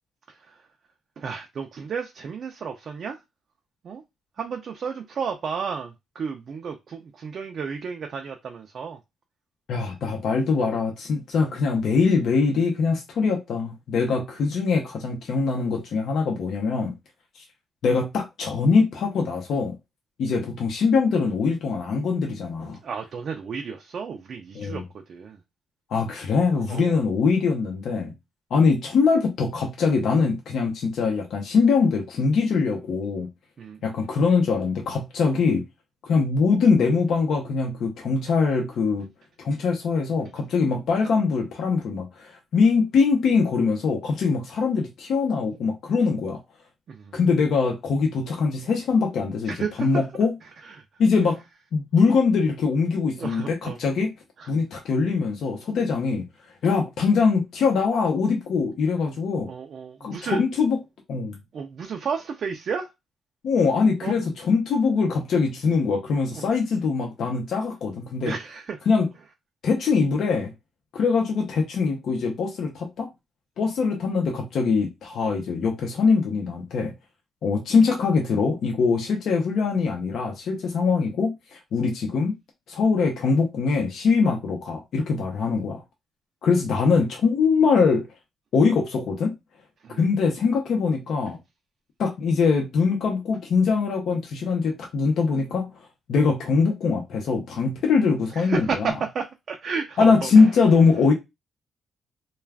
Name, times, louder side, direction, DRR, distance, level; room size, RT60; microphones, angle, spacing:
voice 1, 1.2-3.2 3.8-4.0 4.4-9.0 22.8-24.8 25.1-25.4 26.3-27.0 33.6-34.1 46.9-47.2 49.5-50.1 50.6-50.8 53.2-53.8 54.4-54.5 59.5-60.4 61.5-62.9 64.0-64.3 66.3-66.5 68.2-68.8 89.8-90.1 98.3-100.5, right 6 dB, 45° right, 0.4 m, -32 dB
voice 2, 9.7-16.9 17.8-19.8 20.2-22.8 24.5-24.8 25.9-28.1 28.5-33.3 33.8-35.6 36.0-39.1 39.4-46.4 47.1-49.5 49.8-50.3 51.0-51.4 51.7-54.1 54.5-56.3 56.6-59.5 60.0-60.8 61.1-61.4 63.4-68.3 68.9-69.1 69.6-70.5 70.9-73.1 73.6-76.9 77.4-82.3 82.7-85.8 86.4-88.1 88.5-89.3 89.9-91.4 92.0-95.7 96.1-98.9 100.0-101.1, left 4 dB, 65° left, 0.7 m, -22 dB
2.3 x 2.3 x 3.3 m
cardioid pair, 145°, 0 cm